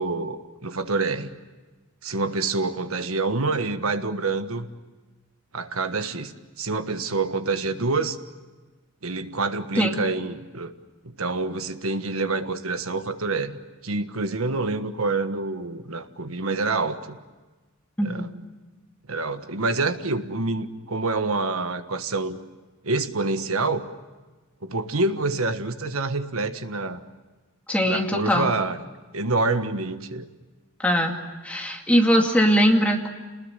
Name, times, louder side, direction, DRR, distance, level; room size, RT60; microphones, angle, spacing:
voice 1, 0.0-1.3 2.0-4.7 5.5-8.2 9.0-10.7 11.2-17.2 18.0-18.3 19.1-22.4 22.8-23.9 24.6-27.0 27.8-28.8 29.1-30.3, right 3 dB, 75° right, 9 dB, 1.5 m, -27 dB
voice 2, 18.0-18.3 27.7-28.5 30.8-31.2 31.4-33.1, equal, 5° left, 1 dB, 2.4 m, -21 dB
28.5 x 20.5 x 9.8 m, 1.3 s
head